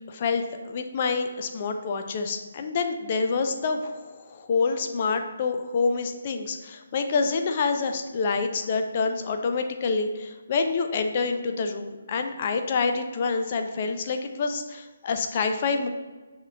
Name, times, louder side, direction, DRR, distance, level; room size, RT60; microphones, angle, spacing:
voice 1, 0.1-15.9, left 4 dB, 40° left, 6 dB, 0.4 m, -27 dB
6.4 x 3.6 x 2.2 m, 1.3 s
hypercardioid pair, 155°, 0 cm